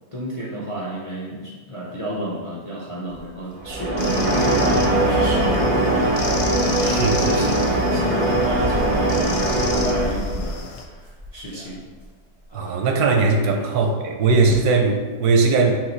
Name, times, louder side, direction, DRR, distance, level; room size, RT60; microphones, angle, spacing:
voice 1, 0.1-5.7 6.4-11.8 13.5-13.7, right 1 dB, 45° left, -6 dB, 0.4 m, -32 dB
sound 1, 3.1-4.5 5.0-5.1 5.5-5.7 6.2-6.4 7.6-7.7 7.9-12.7, left 1 dB, 5° left, 0.8 m, -34 dB
sound 2, 3.6-10.5, right 1 dB, 40° right, 0.5 m, -21 dB
sound 3, 4.0-10.8, left 4 dB, 70° left, 0.9 m, -34 dB
voice 2, 6.8-7.6 12.5-15.7, right 3 dB, 85° right, 4 dB, 1.1 m, -19 dB
3.8 x 2.9 x 4.2 m, 1.5 s
omnidirectional pair, 1.6 m